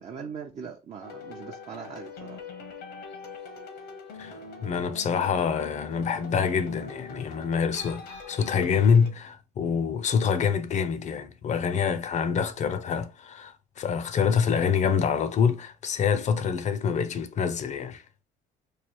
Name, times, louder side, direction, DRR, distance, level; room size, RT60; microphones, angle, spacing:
voice 1, 0.0-2.4, right 6 dB, 40° right, 0.6 m, -40 dB
sound 1, 1.0-9.1, left 4 dB, 80° left, 1.0 m, -43 dB
voice 2, 4.2-18.0, left 6 dB, 45° left, 0.5 m, -26 dB
3.2 x 2.3 x 4.4 m
cardioid pair, 110°, 17 cm